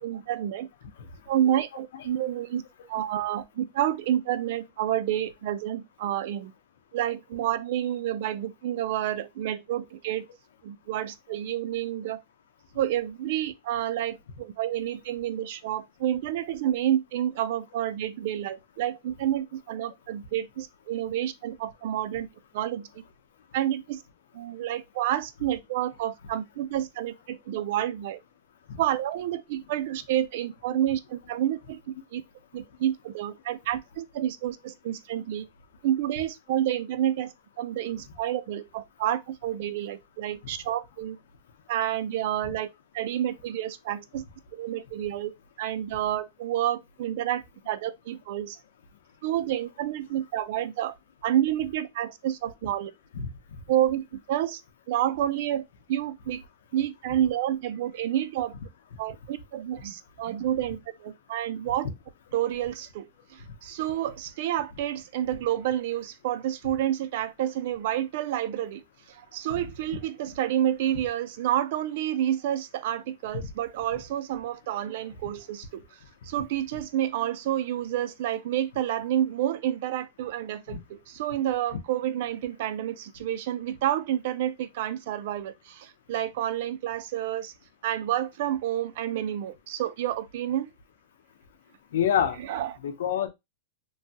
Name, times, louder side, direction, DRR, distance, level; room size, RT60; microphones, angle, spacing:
voice 1, 0.0-0.7 1.3-2.6 2.9-6.5 6.9-10.3 10.6-12.2 12.7-22.3 22.5-22.9 23.5-24.0 24.3-28.2 28.8-32.2 32.5-35.4 35.8-41.2 41.7-42.7 42.9-44.2 44.5-45.3 45.6-48.6 49.2-50.9 51.2-52.9 53.7-54.6 54.9-55.6 55.9-56.4 56.7-58.5 59.0-61.9 62.3-68.8 69.1-75.8 76.2-87.5 87.8-90.7 92.4-92.8, right 11 dB, 55° right, 0.3 m, -29 dB
voice 2, 91.9-92.4 92.8-93.3, left 8 dB, 80° left, 0.6 m, -26 dB
3.0 x 2.2 x 2.7 m
supercardioid pair, 155°, 0 cm